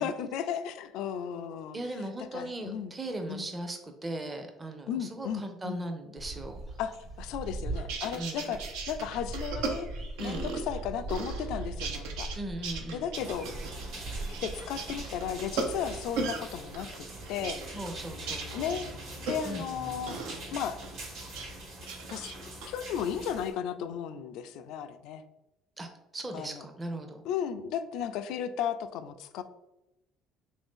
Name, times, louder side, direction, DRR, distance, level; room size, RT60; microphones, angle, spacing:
voice 1, 0.0-1.8 2.3-2.9 3.3-3.5 4.9-5.8 6.8-9.9 10.2-12.3 12.9-13.5 14.2-17.8 18.5-18.9 19.3-20.2 20.5-20.8 22.1-22.4 22.7-25.2 26.3-26.6 27.2-29.4, left 8 dB, 75° left, 10 dB, 0.3 m, -35 dB
voice 2, 1.7-6.6 8.2-8.5 10.2-10.5 12.3-13.1 17.7-18.7 19.4-19.7 25.8-25.9 26.1-27.2, right 1 dB, 20° right, 5 dB, 0.5 m, -38 dB
sound 1, 6.2-19.1 19.4-19.5, right 2 dB, 45° right, 1.1 m, -41 dB
sound 2, 7.7-10.8 11.1-12.4 12.6-16.4 16.7-19.7 20.1-20.4 20.8-21.5 21.8-22.7, right 4 dB, 85° right, 0.5 m, -37 dB
sound 3, 13.1-23.5, right 1 dB, 70° right, 1.3 m, -43 dB
3.2 x 2.6 x 3.5 m, 0.92 s
cardioid pair, 100°, 0 cm